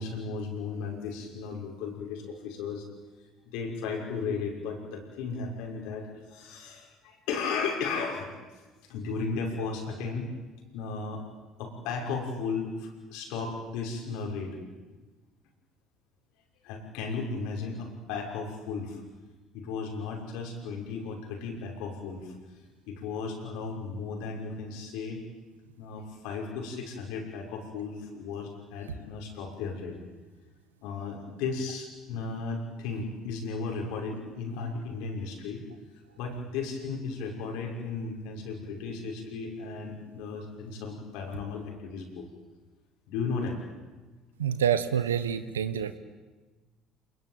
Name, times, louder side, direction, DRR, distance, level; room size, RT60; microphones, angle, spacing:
voice 1, 0.0-2.8 3.5-8.4 8.8-10.3 10.7-11.2 11.6-14.6 16.6-19.0 19.5-22.3 22.9-25.2 25.8-30.0 30.8-35.6 36.2-42.3 43.1-43.6, left 4 dB, 70° left, 1 dB, 6.1 m, -35 dB
voice 2, 44.4-46.0, right 8 dB, 90° right, 12 dB, 1.3 m, -27 dB
27.5 x 21.0 x 9.3 m, 1.3 s
hypercardioid pair, 60°, 0 cm